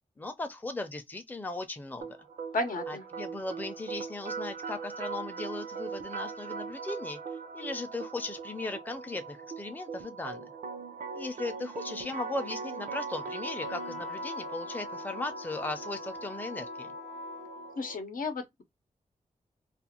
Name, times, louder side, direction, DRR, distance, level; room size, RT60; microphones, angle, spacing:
voice 1, 0.2-2.2 2.9-7.2 7.5-10.5 11.1-16.9, left 2 dB, 15° left, 0.4 m, -37 dB
sound 1, 2.0-18.0, right 5 dB, 80° right, 0.5 m, -40 dB
voice 2, 2.5-3.0 17.8-18.6, left 2 dB, 85° left, 0.7 m, -33 dB
Wind instrument woodwind instrument, 11.7-18.0, left 3 dB, 55° left, 0.8 m, -44 dB
2.4 x 2.4 x 2.8 m
wide cardioid pair, 135°, 14 cm